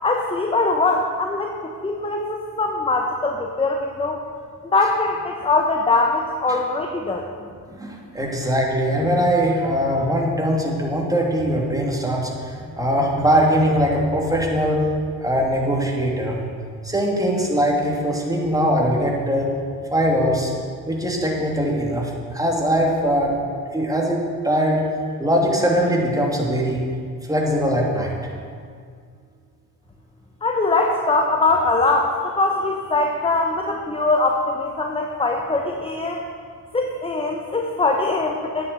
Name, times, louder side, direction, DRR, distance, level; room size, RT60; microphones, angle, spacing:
voice 1, 0.0-4.2 4.6-7.2 30.4-36.2 36.7-38.7, left 3 dB, 10° left, 2 dB, 1.0 m, -22 dB
voice 2, 7.8-14.9 15.2-16.4 16.8-19.5 19.9-20.5 20.9-23.3 23.7-24.8 25.2-26.8 27.3-28.1, equal, 5° right, -2 dB, 2.7 m, -21 dB
9.3 x 7.0 x 8.0 m, 2.1 s
hypercardioid pair, 60°, 48 cm